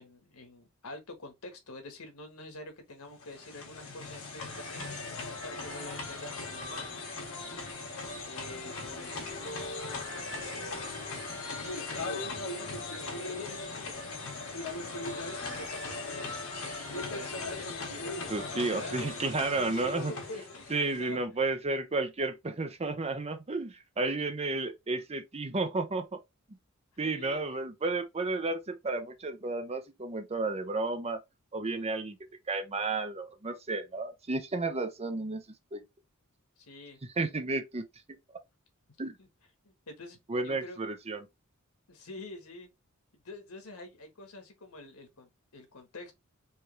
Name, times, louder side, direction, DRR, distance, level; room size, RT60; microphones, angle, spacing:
voice 1, 0.0-5.0 5.4-7.0 8.2-10.1 11.6-12.3 12.9-14.0 14.8-16.4 16.9-21.2 27.0-27.4 36.6-37.0 39.2-39.3 39.6-40.8 41.9-42.7 43.2-46.1, left 2 dB, 85° left, 1.5 m, -46 dB
sound 1, 3.1-21.1, left 3 dB, 70° left, 1.9 m, -38 dB
voice 2, 18.3-20.1 20.7-26.2 27.0-31.2 31.5-32.2 32.5-35.4 35.7-35.8 37.2-37.9 39.0-39.1 40.3-41.3, right 3 dB, 30° right, 0.7 m, -32 dB
4.8 x 2.9 x 3.1 m
head